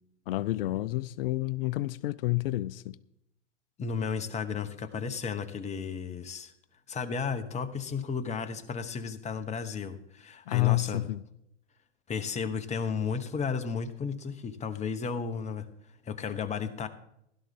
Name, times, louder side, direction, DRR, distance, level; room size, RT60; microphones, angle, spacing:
voice 1, 0.3-3.0 10.5-11.2, left 18 dB, 50° left, 0.5 m, -29 dB
voice 2, 3.8-6.5 6.9-11.1 12.1-15.7 16.0-16.9, left 6 dB, 20° left, 1.1 m, -33 dB
16.5 x 12.0 x 3.6 m
hypercardioid pair, 105°, 37 cm